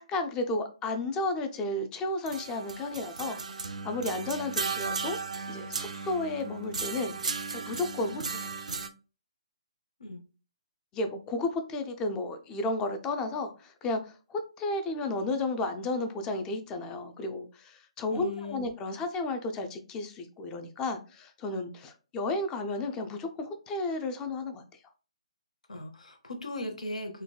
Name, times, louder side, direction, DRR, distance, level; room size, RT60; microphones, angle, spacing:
voice 1, 0.0-5.2 5.5-7.2 7.5-8.5 10.9-24.6, left 2 dB, 15° left, 7 dB, 0.4 m, -33 dB
sound 1, 2.3-8.9, right 4 dB, 80° right, 0.4 m, -36 dB
voice 2, 18.1-18.7 25.7-27.2, left 1 dB, 85° left, 6 dB, 0.8 m, -38 dB
3.8 x 2.2 x 2.2 m, 0.34 s
hypercardioid pair, 145°, 4 cm